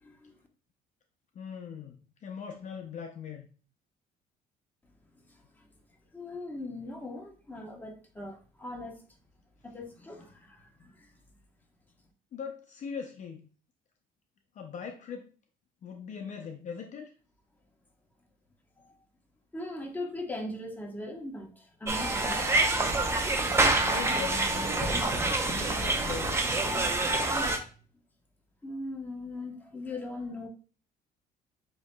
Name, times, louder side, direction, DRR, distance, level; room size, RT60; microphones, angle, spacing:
voice 1, 0.0-0.3 6.1-9.0 9.6-11.1 19.5-22.4 28.6-30.5, left 2 dB, 10° left, 1.1 m, -39 dB
voice 2, 1.4-3.5 12.3-13.4 14.6-15.3 15.8-17.1 23.8-25.1 25.5-26.4, left 6 dB, 45° left, 0.6 m, -40 dB
sound 1, 21.9-27.6, right 2 dB, 15° right, 0.7 m, -27 dB
7.3 x 2.8 x 2.3 m
cardioid pair, 110°, 17 cm